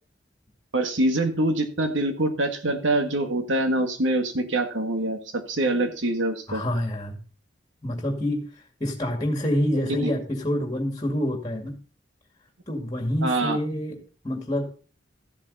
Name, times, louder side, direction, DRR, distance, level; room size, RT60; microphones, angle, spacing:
voice 1, 0.7-6.6 9.9-10.1 13.2-13.6, right 1 dB, 85° right, 6 dB, 1.8 m, -25 dB
voice 2, 6.5-7.1 7.8-8.4 8.8-11.8 12.7-14.0 14.2-14.7, left 1 dB, 20° left, 3 dB, 2.2 m, -27 dB
14.0 x 7.6 x 4.1 m, 0.37 s
head